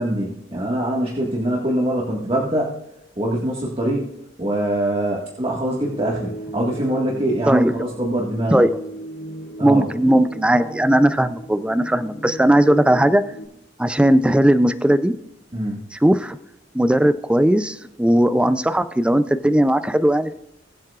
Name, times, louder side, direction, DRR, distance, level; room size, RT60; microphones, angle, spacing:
voice 1, 0.0-2.7 3.2-4.1 4.4-8.6 9.6-9.9 15.5-15.8, right 1 dB, 30° right, -3 dB, 1.7 m, -23 dB
sound 1, 5.8-13.5, right 1 dB, 85° left, 4.1 m, -37 dB
voice 2, 7.5-7.9 8.5-8.7 9.6-13.2 13.8-15.1 15.9-16.4 16.7-20.3, right 1 dB, 5° right, 11 dB, 0.4 m, -17 dB
21.0 x 7.6 x 2.4 m, 0.82 s
head